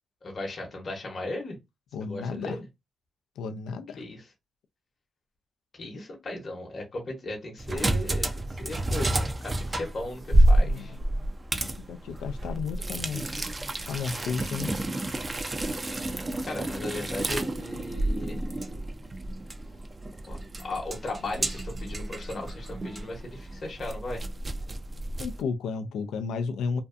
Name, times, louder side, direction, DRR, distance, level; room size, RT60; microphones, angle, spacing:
voice 1, 0.2-1.6 2.0-2.6 4.0-4.3 5.8-11.0 16.5-18.4 20.2-24.2, left 2 dB, 50° left, 0.9 m, -37 dB
voice 2, 1.9-2.6 3.4-4.0 10.6-10.9 11.8-13.2 13.9-14.7 25.2-26.8, left 5 dB, 85° left, 0.4 m, -33 dB
sound 1, 7.6-25.4, right 1 dB, 35° right, 0.5 m, -29 dB
2.6 x 2.3 x 2.4 m
supercardioid pair, 55°, 0 cm